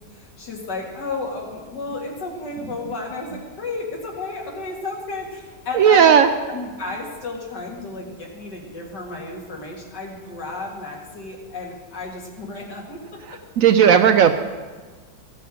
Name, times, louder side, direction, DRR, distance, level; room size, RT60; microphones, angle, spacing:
voice 1, 0.1-6.2 6.5-13.2, left 3 dB, 90° left, -1 dB, 2.7 m, -32 dB
voice 2, 5.7-6.3 13.6-14.3, right 8 dB, 70° right, 9 dB, 0.8 m, -13 dB
15.5 x 6.8 x 6.2 m, 1.4 s
omnidirectional pair, 1.8 m